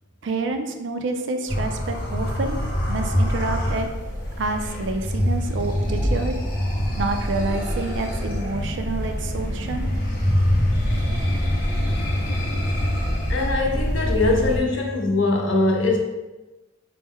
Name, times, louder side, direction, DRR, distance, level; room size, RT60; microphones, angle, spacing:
voice 1, 0.2-2.6 2.9-3.9 4.4-6.3 7.0-9.9, right 3 dB, 60° right, 6 dB, 0.4 m, -28 dB
sound 1, 1.5-14.6, equal, 45° left, 0.9 m, -25 dB
Thunder / Rain, 3.4-9.8, equal, 10° left, 0.4 m, -35 dB
voice 2, 13.3-16.0, left 2 dB, 65° left, 1 dB, 0.6 m, -21 dB
4.3 x 2.1 x 3.6 m, 1.1 s
head